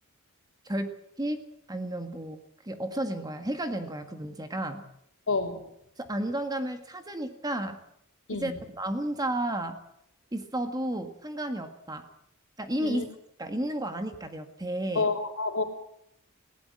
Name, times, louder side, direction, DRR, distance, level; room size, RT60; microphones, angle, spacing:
voice 1, 0.6-1.4 1.7-2.4 2.6-4.8 6.0-7.8 8.3-9.8 10.3-12.0 12.6-15.1, right 1 dB, 20° right, 7 dB, 1.7 m, -32 dB
voice 2, 5.3-5.6 8.3-8.6 12.8-13.0 14.9-15.6, left 3 dB, 65° left, 3 dB, 3.4 m, -29 dB
20.5 x 17.0 x 7.7 m, 0.77 s
head